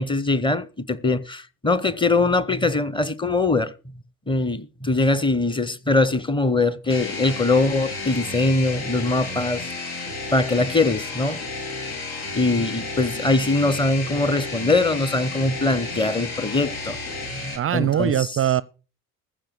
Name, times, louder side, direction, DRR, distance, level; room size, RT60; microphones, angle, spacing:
voice 1, 0.0-3.7 4.3-9.6 10.3-11.4 12.3-17.0 17.3-18.3, left 2 dB, 10° left, 1.0 m, -22 dB
sound 1, 6.9-17.6, left 3 dB, 70° left, 3.4 m, -32 dB
voice 2, 17.6-18.6, right 11 dB, 30° right, 0.5 m, -21 dB
15.0 x 5.1 x 8.4 m
figure-of-eight pair, 55°, 46 cm